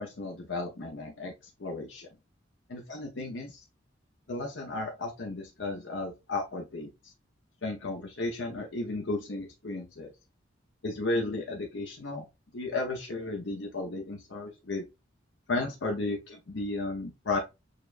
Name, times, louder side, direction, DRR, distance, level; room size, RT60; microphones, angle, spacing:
voice 1, 0.0-1.3 1.6-2.1 2.7-3.6 4.3-6.9 7.6-10.1 10.8-12.3 12.5-14.9 15.5-17.4, left 2 dB, 65° left, 1 dB, 0.7 m, -34 dB
6.5 x 2.2 x 2.4 m, 0.24 s
head